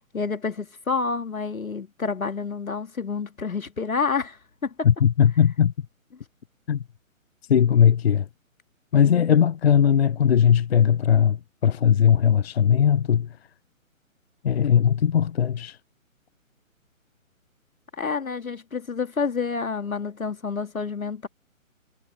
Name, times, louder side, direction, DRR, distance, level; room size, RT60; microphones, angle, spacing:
voice 1, 0.1-4.9 7.7-7.8 9.0-9.3 18.0-21.3, left 5 dB, 80° left, 2.2 m, -29 dB
voice 2, 4.8-5.7 6.7-6.8 7.5-8.2 8.9-13.3 14.4-15.8, left 8 dB, 50° left, 0.6 m, -19 dB
figure-of-eight pair, 140°, 41 cm